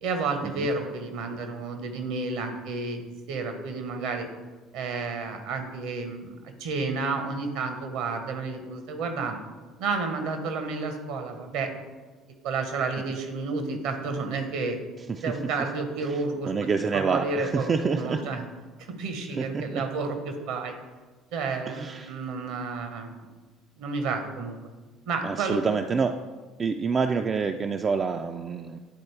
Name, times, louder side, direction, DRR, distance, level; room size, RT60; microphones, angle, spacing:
voice 1, 0.0-3.0 3.3-4.3 4.7-9.4 9.8-11.7 12.4-14.8 15.2-16.5 16.9-18.4 18.8-20.7 21.3-23.2 23.8-24.6 25.1-25.6, right 4 dB, 60° right, 6 dB, 0.8 m, -31 dB
voice 2, 16.1-18.2 19.4-19.8 21.7-22.1 25.2-26.2 26.6-28.8, right 5 dB, 35° right, 5 dB, 0.3 m, -27 dB
9.4 x 4.0 x 3.2 m, 1.3 s
figure-of-eight pair, 55°, 0 cm